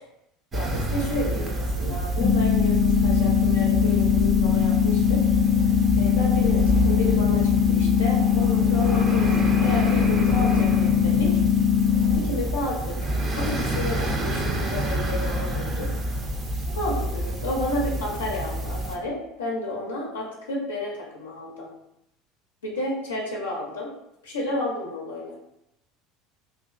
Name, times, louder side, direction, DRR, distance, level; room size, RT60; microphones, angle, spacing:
voice 1, 0.5-5.2 6.0-11.3 12.1-15.9 16.6-21.7 22.6-23.9 24.2-25.4, left 1 dB, 85° left, -4 dB, 0.5 m, -31 dB
sound 1, 0.5-19.0, right 1 dB, 30° right, 0.5 m, -28 dB
sound 2, 2.2-12.2, left 8 dB, 30° left, 0.6 m, -21 dB
2.4 x 2.4 x 2.3 m, 0.81 s
hypercardioid pair, 70°, 0 cm